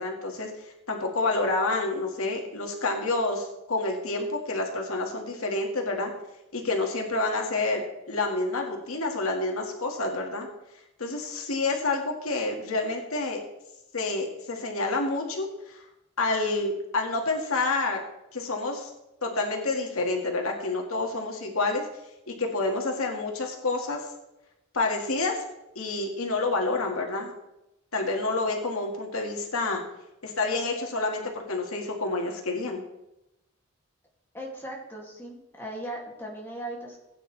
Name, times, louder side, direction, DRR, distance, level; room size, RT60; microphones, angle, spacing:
voice 1, 0.0-6.1 6.5-10.5 11.0-13.4 13.9-15.8 16.2-18.0 18.3-18.9 19.2-21.9 22.3-24.1 24.7-25.4 25.8-27.3 27.9-29.8 30.2-32.8, left 3 dB, 85° left, 1 dB, 2.0 m, -28 dB
voice 2, 34.3-37.0, right 1 dB, 10° left, -3 dB, 2.5 m, -38 dB
17.0 x 9.2 x 3.4 m, 0.92 s
head